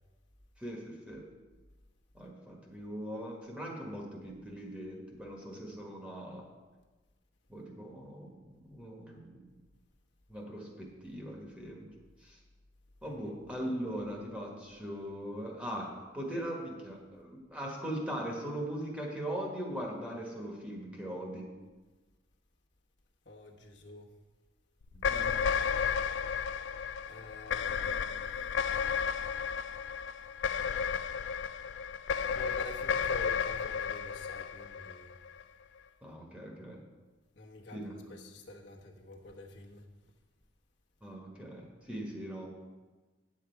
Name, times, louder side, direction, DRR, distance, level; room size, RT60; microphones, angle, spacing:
voice 1, 0.6-1.2 2.1-6.5 7.5-9.5 10.3-11.9 12.2-12.4 13.0-21.5 24.9-25.4 36.0-36.8 37.7-37.9 41.0-42.5, right 1 dB, 5° right, -1 dB, 1.5 m, -40 dB
voice 2, 23.2-24.1 27.1-28.3 32.3-35.1 37.3-39.8, left 1 dB, 70° left, -2 dB, 1.2 m, -48 dB
sound 1, 24.9-35.4, left 6 dB, 85° left, 0.4 m, -33 dB
9.3 x 7.5 x 4.6 m, 1.3 s
head